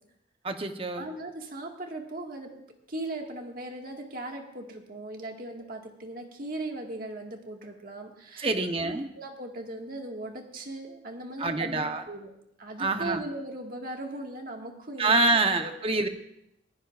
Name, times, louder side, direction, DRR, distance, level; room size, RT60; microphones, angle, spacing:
voice 1, 0.4-1.1 8.4-9.1 11.4-12.0 12.8-13.2 15.0-16.1, right 3 dB, 30° right, 6 dB, 0.9 m, -26 dB
voice 2, 1.0-2.5 2.9-8.5 8.8-12.3 12.6-15.3 15.6-16.1, right 2 dB, 45° right, 2 dB, 1.8 m, -38 dB
21.0 x 15.0 x 2.5 m, 0.81 s
head